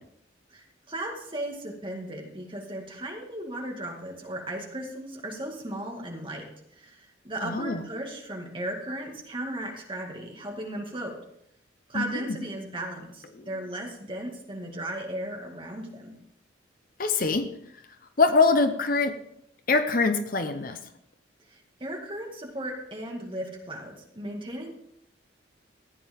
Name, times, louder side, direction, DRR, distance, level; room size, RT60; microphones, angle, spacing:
voice 1, 0.5-6.4 6.8-11.1 11.9-16.1 21.5-24.7, right 1 dB, 25° right, 0 dB, 2.0 m, -36 dB
voice 2, 7.4-7.8 11.9-12.4 13.4-13.5 17.0-17.4 18.2-19.1 19.7-20.8, left 4 dB, 45° left, 8 dB, 0.8 m, -24 dB
14.5 x 9.4 x 3.6 m, 0.73 s
head